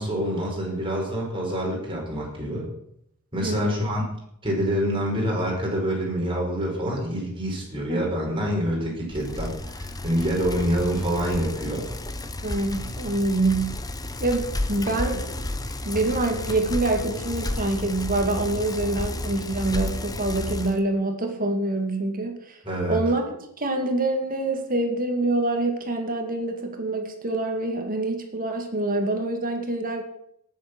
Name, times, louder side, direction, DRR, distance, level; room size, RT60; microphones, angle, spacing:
voice 1, 0.0-2.7 3.3-4.0 4.4-11.9 22.6-23.0, equal, 25° right, -2 dB, 5.2 m, -26 dB
voice 2, 3.4-3.8 7.9-8.0 12.4-13.8 14.2-15.4 15.8-22.6 22.8-30.0, right 2 dB, 40° right, 4 dB, 2.2 m, -26 dB
Bicycle, 9.1-20.8, left 1 dB, 15° left, 0.9 m, -32 dB
18.5 x 7.8 x 6.1 m, 0.73 s
head